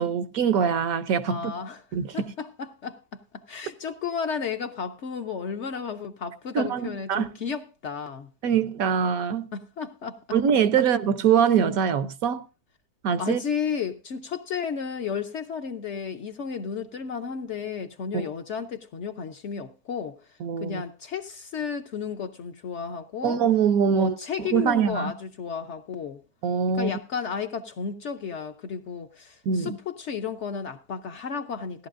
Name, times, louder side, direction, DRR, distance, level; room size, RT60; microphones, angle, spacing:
voice 1, 0.0-1.5 1.9-2.0 6.5-7.3 8.4-9.5 10.3-12.4 13.0-13.4 18.1-18.3 20.4-20.8 23.2-25.1 26.4-26.9 29.5-29.8, right 7 dB, 70° right, 1.1 m, -23 dB
voice 2, 1.3-1.9 2.1-8.3 9.5-10.2 13.2-23.4 23.9-26.2 26.7-31.9, left 6 dB, 55° left, 0.9 m, -33 dB
16.5 x 11.5 x 2.5 m
omnidirectional pair, 1.6 m